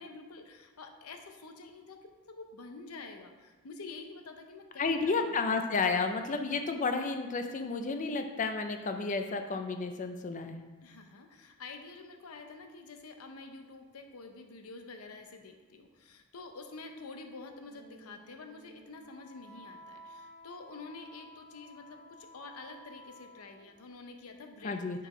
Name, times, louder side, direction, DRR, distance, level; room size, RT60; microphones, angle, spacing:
voice 1, 0.0-5.3 10.8-24.8 25.0-25.1, left 3 dB, 85° left, 5 dB, 0.7 m, -48 dB
voice 2, 4.8-10.6 24.6-25.0, left 4 dB, 35° left, 6 dB, 0.5 m, -31 dB
Wind instrument woodwind instrument, 17.6-23.8, equal, 15° left, 1.9 m, -54 dB
4.9 x 4.6 x 4.9 m, 1.3 s
head